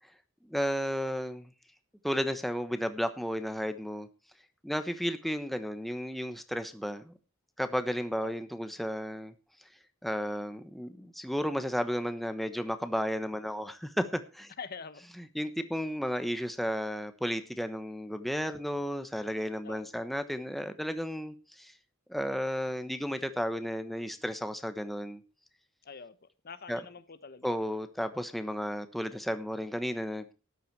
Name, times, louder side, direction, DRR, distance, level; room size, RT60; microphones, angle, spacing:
voice 1, 0.5-1.5 2.0-4.1 4.6-7.1 7.6-9.3 10.0-14.5 15.3-21.7 22.1-25.2 26.7-26.8 27.4-30.3, equal, ahead, 1.1 m, -33 dB
voice 2, 14.6-15.0 19.6-19.8 25.8-27.6, left 5 dB, 50° left, 0.9 m, -45 dB
13.0 x 10.5 x 4.7 m
head